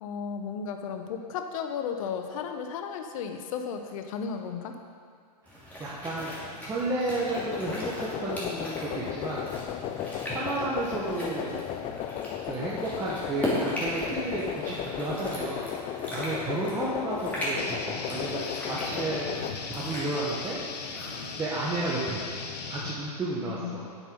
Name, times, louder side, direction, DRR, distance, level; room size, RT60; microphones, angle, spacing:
voice 1, 0.0-4.7 23.5-23.8, left 6 dB, 55° left, 6 dB, 1.1 m, -34 dB
voice 2, 5.4-9.4 10.3-11.6 12.4-19.3 19.7-20.9 21.4-23.8, right 2 dB, 15° right, -8 dB, 1.5 m, -32 dB
sound 1, 5.5-21.4, equal, 5° left, 2.9 m, -38 dB
sound 2, 7.3-19.5, left 10 dB, 30° left, 0.4 m, -35 dB
sound 3, 17.6-23.0, left 5 dB, 80° left, 1.1 m, -38 dB
9.3 x 7.5 x 5.3 m, 2.1 s
hypercardioid pair, 120°, 20 cm